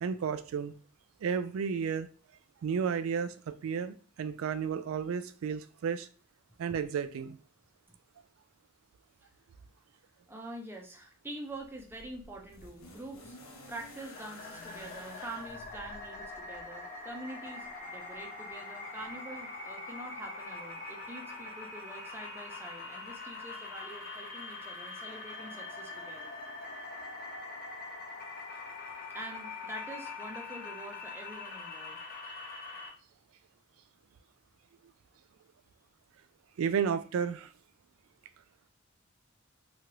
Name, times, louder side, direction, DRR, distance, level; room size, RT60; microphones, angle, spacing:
voice 1, 0.0-0.7 1.2-2.1 2.6-6.1 6.6-7.4 36.6-37.5, right 6 dB, 80° right, 12 dB, 0.3 m, -32 dB
voice 2, 10.3-13.4 13.7-26.3 29.1-32.0, right 1 dB, 10° right, 1 dB, 0.5 m, -45 dB
sound 1, 11.5-16.7 17.8-17.9, left 2 dB, 90° left, 0.8 m, -51 dB
sound 2, 14.2-32.9, left 3 dB, 45° left, 0.7 m, -43 dB
3.0 x 2.4 x 2.9 m, 0.38 s
head